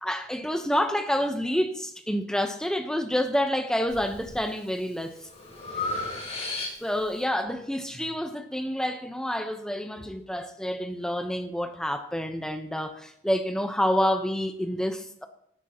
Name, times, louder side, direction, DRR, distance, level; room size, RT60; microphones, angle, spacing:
voice 1, 0.0-5.3 6.8-15.2, equal, 5° left, 1.0 m, -28 dB
Breathing, 3.9-4.4 4.9-7.1, left 3 dB, 35° left, 5.5 m, -34 dB
17.0 x 9.0 x 3.0 m
head